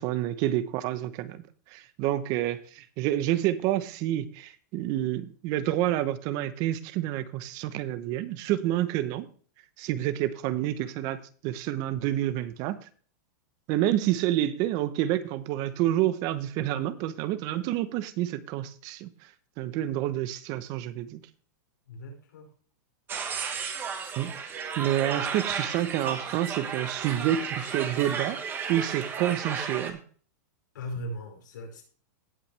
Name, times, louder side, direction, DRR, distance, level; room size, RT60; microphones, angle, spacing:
voice 1, 0.0-1.4 1.7-9.3 9.8-12.9 13.7-19.3 19.6-21.2 24.2-24.3 24.8-28.4 28.7-30.0, right 13 dB, 40° right, 1.0 m, -28 dB
voice 2, 21.9-22.5 30.7-31.8, equal, 90° left, 5.3 m, -38 dB
sound 1, 23.1-29.9, right 6 dB, 20° right, 1.5 m, -34 dB
17.5 x 5.9 x 3.4 m
supercardioid pair, 150°, 10 cm